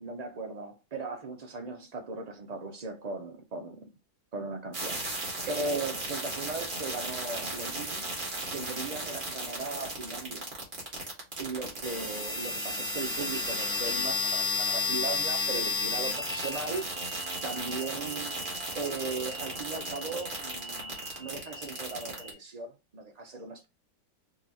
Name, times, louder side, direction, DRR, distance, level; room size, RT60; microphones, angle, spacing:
voice 1, 0.0-3.9 4.3-8.1 8.5-10.5 11.4-17.1 17.4-18.4 18.7-23.7, right 3 dB, 75° right, 0.3 m, -38 dB
sound 1, 4.7-22.3, left 1 dB, 35° right, 1.5 m, -34 dB
4.9 x 2.9 x 2.7 m
omnidirectional pair, 1.6 m